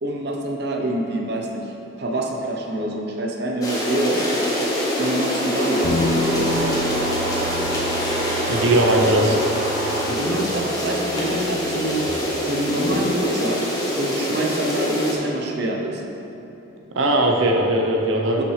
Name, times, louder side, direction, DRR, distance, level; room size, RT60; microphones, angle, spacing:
voice 1, 0.0-1.7 2.0-4.2 5.0-6.7 9.0-9.3 10.1-12.0 12.5-13.6 14.0-16.0 18.4-18.5, right 1 dB, 55° right, 0 dB, 0.8 m, -26 dB
sound 1, 3.6-15.1, equal, 20° left, 1.3 m, -24 dB
sound 2, 4.2-11.2, right 1 dB, 35° right, 1.9 m, -33 dB
sound 3, 5.8-12.1, left 1 dB, 70° left, 0.7 m, -31 dB
voice 2, 8.5-9.3 16.9-18.4, right 1 dB, 85° right, 0 dB, 0.8 m, -19 dB
12.0 x 5.9 x 3.3 m, 2.8 s
head